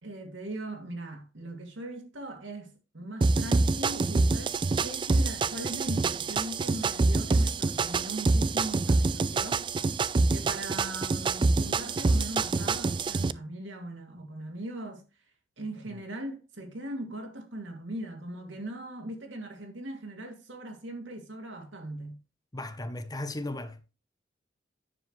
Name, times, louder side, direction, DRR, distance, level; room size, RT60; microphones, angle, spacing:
voice 1, 0.0-9.9 10.3-15.1 15.6-22.2, right 1 dB, 80° right, 2.4 m, -39 dB
sound 1, 3.2-13.3, right 3 dB, 25° right, 0.3 m, -26 dB
voice 2, 22.5-24.0, left 1 dB, 20° left, 0.8 m, -37 dB
9.9 x 7.2 x 3.1 m
head